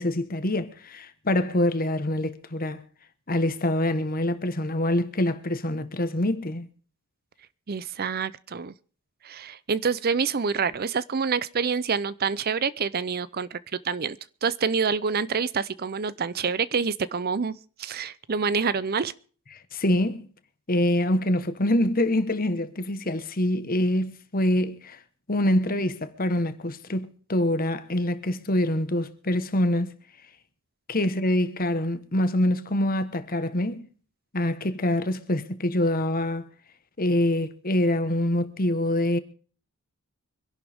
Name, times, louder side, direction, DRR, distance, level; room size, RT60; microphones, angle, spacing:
voice 1, 0.0-2.8 3.3-6.7 19.7-20.3 20.7-25.0 25.3-29.9 30.9-33.9 34.3-36.5 37.0-39.2, left 1 dB, 40° left, 1.3 m, -25 dB
voice 2, 7.7-8.7 9.2-13.6 13.8-14.2 14.4-17.5 17.8-19.1, right 5 dB, 45° right, 0.6 m, -27 dB
25.0 x 11.5 x 3.6 m
head